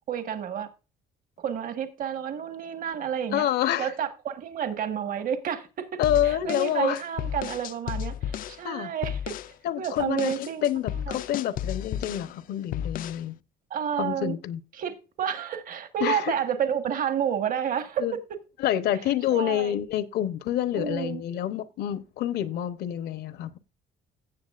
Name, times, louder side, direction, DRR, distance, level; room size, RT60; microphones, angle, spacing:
voice 1, 0.1-0.7 1.4-3.5 3.8-9.3 9.8-10.6 10.9-11.2 13.7-14.3 14.7-18.1 19.3-19.8 20.7-21.2, right 8 dB, 55° right, 1.4 m, -30 dB
voice 2, 3.3-3.9 6.0-7.0 8.6-8.9 9.6-13.3 14.0-14.6 16.0-16.3 18.0-18.2 18.6-23.6, left 11 dB, 70° left, 0.9 m, -27 dB
sound 1, 6.0-8.6 9.0-9.5 9.8-12.3 12.7-13.2, left 10 dB, 55° left, 0.4 m, -33 dB
16.5 x 7.0 x 2.5 m
cardioid pair, 110°, 17 cm